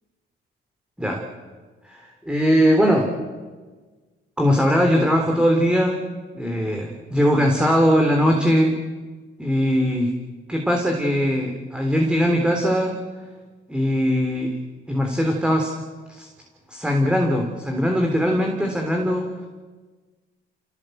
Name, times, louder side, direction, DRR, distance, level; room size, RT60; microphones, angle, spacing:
voice 1, 1.8-3.1 4.4-6.0 6.3-8.8 9.4-10.1 10.5-12.9 13.7-14.5 14.9-15.7 16.1-16.3 16.7-19.5, equal, 5° right, 2 dB, 3.4 m, -20 dB
28.5 x 17.5 x 7.9 m, 1.4 s
cardioid pair, 90°, 20 cm